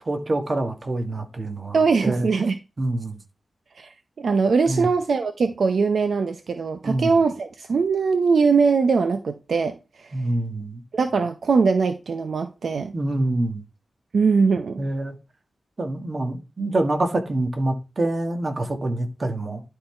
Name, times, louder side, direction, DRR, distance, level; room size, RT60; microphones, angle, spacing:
voice 1, 0.0-2.3 2.8-3.2 4.7-4.9 6.8-7.1 10.1-10.8 12.9-13.6 14.8-15.2 15.8-19.6, right 2 dB, 35° right, 1.5 m, -26 dB
voice 2, 1.7-2.5 3.8-3.9 4.2-10.1 10.9-12.9 14.1-14.8, right 5 dB, 70° right, 0.6 m, -21 dB
11.5 x 3.8 x 4.4 m
wide cardioid pair, 140°, 0 cm